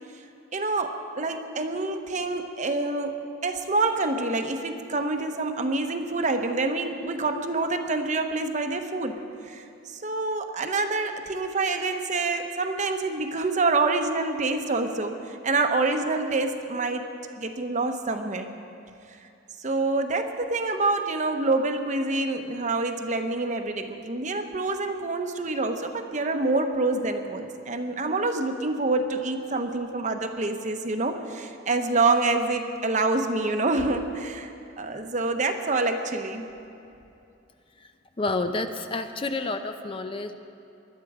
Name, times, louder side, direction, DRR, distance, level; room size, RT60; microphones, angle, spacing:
voice 1, 0.5-3.1 3.4-17.1 17.4-18.5 19.6-36.5, right 3 dB, 40° right, 6 dB, 1.0 m, -27 dB
voice 2, 38.2-40.3, left 2 dB, 30° left, 7 dB, 0.6 m, -29 dB
20.5 x 12.0 x 4.9 m, 2.7 s
head